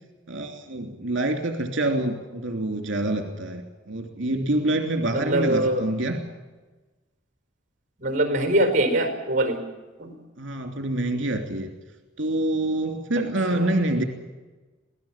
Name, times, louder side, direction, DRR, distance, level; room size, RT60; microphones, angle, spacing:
voice 1, 0.3-6.2 10.4-11.7 12.2-14.0, right 1 dB, 65° right, 4 dB, 3.1 m, -26 dB
voice 2, 5.1-5.8 8.0-9.6 10.0-10.2 13.1-13.2 13.5-13.7, right 1 dB, 40° right, 7 dB, 4.7 m, -23 dB
26.0 x 17.5 x 7.4 m, 1.2 s
head